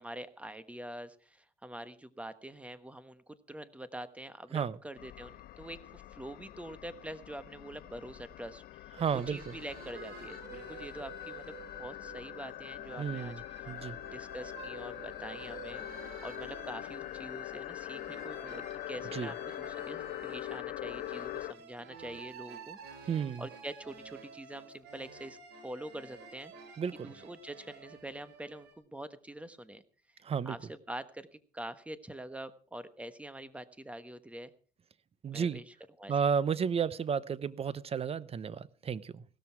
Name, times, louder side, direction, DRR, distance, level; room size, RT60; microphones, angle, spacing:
voice 1, 0.0-13.7 14.1-22.8 23.4-25.4 25.6-26.7 27.0-29.8 30.1-30.2 30.4-31.3 31.5-34.5 35.3-36.1, right 1 dB, 5° right, 12 dB, 1.2 m, -45 dB
sound 1, 5.0-21.5, left 14 dB, 65° left, 0.6 m, -43 dB
voice 2, 9.0-9.5 13.0-14.0 19.1-19.3 23.1-23.5 26.8-27.1 30.2-30.6 35.2-35.6 36.1-39.2, right 7 dB, 35° right, 19 dB, 0.8 m, -32 dB
sound 2, 9.0-28.7, right 6 dB, 75° right, 3.8 m, -51 dB
16.5 x 13.0 x 4.6 m, 0.40 s
cardioid pair, 110°, 17 cm